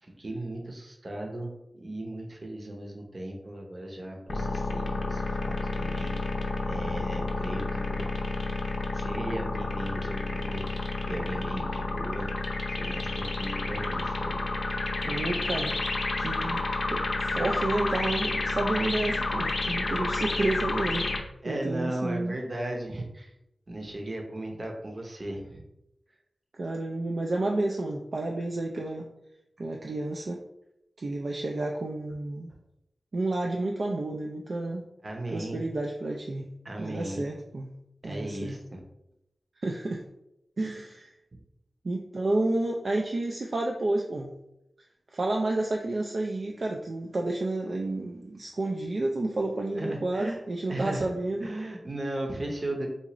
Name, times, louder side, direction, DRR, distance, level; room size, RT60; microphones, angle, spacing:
voice 1, 0.0-8.1 8.9-14.5 21.4-23.3 23.7-25.6 35.0-35.6 36.6-37.3 38.0-38.8 49.7-50.4 50.7-51.1 51.4-52.9, right 1 dB, 40° right, 1 dB, 0.8 m, -37 dB
sound 1, 4.3-21.2, left 3 dB, 65° left, 0.5 m, -30 dB
voice 2, 15.0-15.7 16.2-21.1 21.5-22.3 26.5-29.1 29.6-30.4 31.0-32.5 33.1-34.9 35.3-36.5 36.8-37.7 38.0-38.6 39.6-40.0 40.6-41.1 41.8-44.3 45.1-51.5, right 2 dB, 60° right, 0 dB, 0.3 m, -30 dB
3.8 x 2.4 x 2.9 m, 0.85 s
wide cardioid pair, 80°, 0 cm